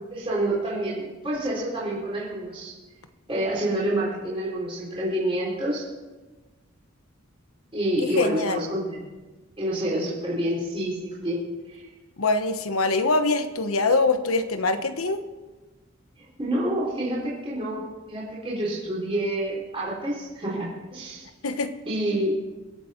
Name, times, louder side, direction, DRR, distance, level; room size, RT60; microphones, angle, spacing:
voice 1, 0.0-2.7 3.3-5.9 7.7-9.0 9.6-11.4 11.7-11.8 16.2-17.8 18.1-21.3 21.9-22.3, right 1 dB, 25° right, -6 dB, 4.0 m, -28 dB
voice 2, 8.0-8.6 12.2-15.2 21.4-21.7, left 3 dB, 90° left, 9 dB, 1.1 m, -23 dB
25.0 x 8.3 x 4.5 m, 1.2 s
head